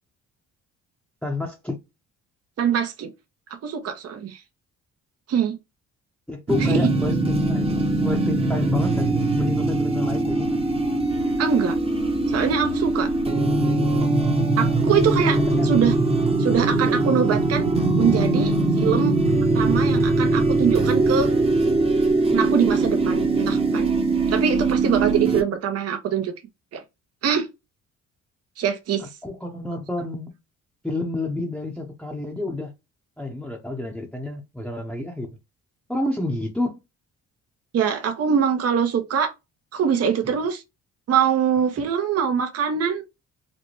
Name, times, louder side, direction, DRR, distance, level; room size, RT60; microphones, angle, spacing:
voice 1, 1.2-1.8 6.3-10.5 15.4-15.7 29.0-30.3 30.8-32.7 33.2-35.3 35.9-36.8, left 2 dB, 5° left, 0.7 m, -29 dB
voice 2, 2.6-3.1 3.6-4.4 5.3-5.5 6.6-6.8 11.4-11.8 12.3-13.1 14.6-15.4 15.6-15.9 16.4-19.2 19.5-21.3 22.3-23.9 24.3-26.3 26.7-26.8 27.2-27.5 28.6-29.1 37.7-39.3 39.7-40.6 41.1-43.0, right 8 dB, 55° right, 0.8 m, -23 dB
sound 1, 6.5-25.4, right 2 dB, 20° right, 0.9 m, -21 dB
4.1 x 2.1 x 3.0 m
cardioid pair, 90°, 30 cm